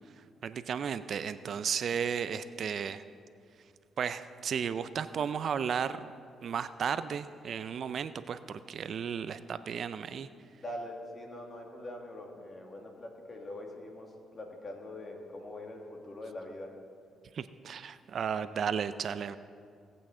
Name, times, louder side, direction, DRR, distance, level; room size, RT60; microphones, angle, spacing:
voice 1, 0.4-3.0 4.0-6.1 6.4-10.3 17.3-19.4, right 7 dB, 55° right, 13 dB, 0.4 m, -34 dB
voice 2, 10.6-16.7, left 1 dB, 35° left, 1 dB, 2.0 m, -43 dB
18.0 x 8.3 x 3.8 m, 2.2 s
cardioid pair, 90°, 0 cm